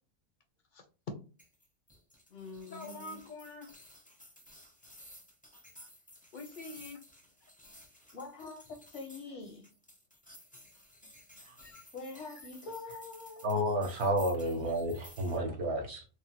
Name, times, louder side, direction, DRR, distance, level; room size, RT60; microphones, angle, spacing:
voice 1, 0.7-1.2 2.6-3.7 6.3-7.0 11.6-11.8, left 3 dB, 55° left, 5 dB, 0.6 m, -45 dB
sound 1, 1.4-15.4, left 1 dB, 10° left, 0.4 m, -55 dB
voice 2, 2.3-3.2 8.1-9.7 11.9-13.5, left 3 dB, 80° left, 1 dB, 1.0 m, -45 dB
voice 3, 13.4-16.0, equal, 65° right, 2 dB, 0.9 m, -31 dB
3.2 x 2.1 x 2.8 m, 0.35 s
omnidirectional pair, 1.2 m